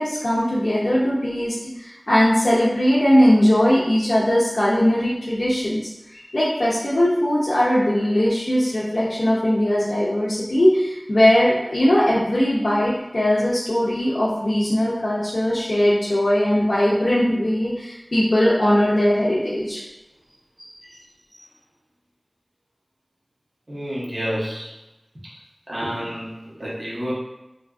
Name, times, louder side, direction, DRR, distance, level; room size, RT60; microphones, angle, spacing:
voice 1, 0.0-5.8 6.1-19.8, equal, 90° left, -8 dB, 0.5 m, -19 dB
voice 2, 20.6-21.0 21.3-21.4 23.7-24.7 25.3-25.4 25.7-27.1, equal, 60° right, -8 dB, 1.0 m, -30 dB
2.7 x 2.5 x 2.3 m, 0.95 s
wide cardioid pair, 50°, 0 cm